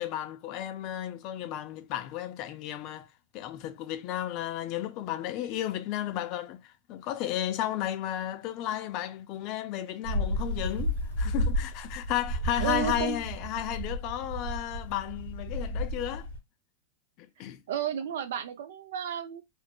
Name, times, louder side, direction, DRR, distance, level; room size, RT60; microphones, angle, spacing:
voice 1, 0.0-3.1 3.3-16.3 17.2-17.6, left 12 dB, 45° left, 0.4 m, -33 dB
sound 1, 10.0-16.4, equal, 85° left, 1.5 m, -32 dB
voice 2, 12.6-13.2 17.7-19.4, right 10 dB, 75° right, 0.4 m, -32 dB
3.1 x 2.0 x 2.2 m
hypercardioid pair, 135°, 0 cm